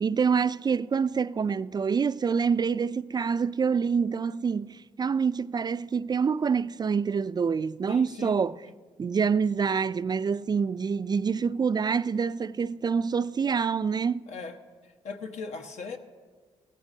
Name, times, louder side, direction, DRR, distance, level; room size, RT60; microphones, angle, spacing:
voice 1, 0.0-8.6 9.0-14.3, right 6 dB, 35° right, 0.3 m, -26 dB
voice 2, 7.9-8.4 8.7-8.8 14.3-14.6 15.0-16.0, left 4 dB, 70° left, 1.3 m, -38 dB
16.5 x 14.5 x 2.8 m
supercardioid pair, 60°, 12 cm